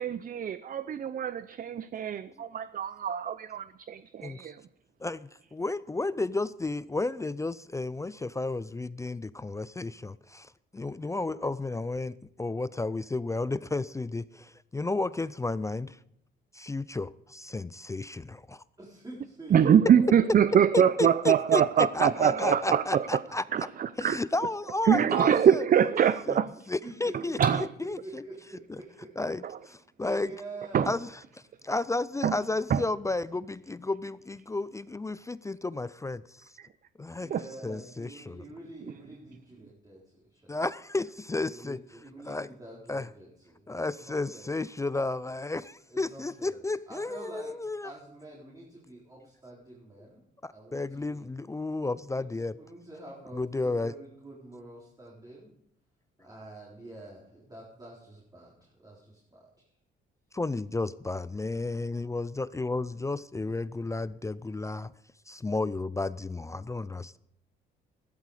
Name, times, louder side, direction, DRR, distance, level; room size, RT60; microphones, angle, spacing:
voice 1, 0.0-4.6 19.5-23.1 23.5-24.2 24.9-26.4 27.1-27.7 29.4-29.5 30.7-30.9 32.2-32.3 32.7-32.8 36.6-36.7 37.3-37.4, right 8 dB, 45° right, 0.6 m, -24 dB
voice 2, 5.0-16.0 16.5-18.6 20.7-23.4 24.0-25.6 26.3-26.4 26.7-28.2 29.2-30.3 30.9-31.1 31.6-36.5 37.0-37.3 37.6-38.4 40.5-41.8 42.3-42.5 42.9-43.1 43.7-47.9 50.4-52.6 53.3-53.9 60.3-64.9 65.3-67.2, left 2 dB, 15° left, 0.4 m, -32 dB
voice 3, 18.8-20.0 21.0-22.6 23.3-23.4 25.8-26.1 26.8-27.4 27.8-29.1 30.0-31.0 31.5-31.7 37.2-40.6 41.5-44.5 45.9-46.6 46.9-47.6 47.8-50.2 50.5-51.2 52.1-55.5 56.2-59.5, right 2 dB, 20° right, 4.0 m, -47 dB
14.5 x 12.5 x 4.9 m
cardioid pair, 90°, 20 cm